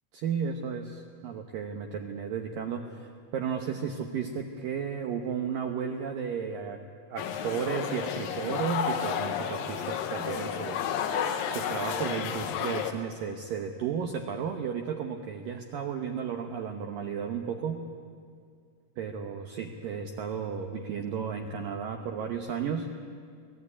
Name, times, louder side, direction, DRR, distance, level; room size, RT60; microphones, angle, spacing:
voice 1, 0.1-6.8 7.1-17.8 19.0-22.9, right 7 dB, 85° right, 4 dB, 1.9 m, -34 dB
sound 1, 7.2-12.9, left 8 dB, 70° left, 2.2 m, -31 dB
28.0 x 19.0 x 9.8 m, 2.2 s
omnidirectional pair, 5.6 m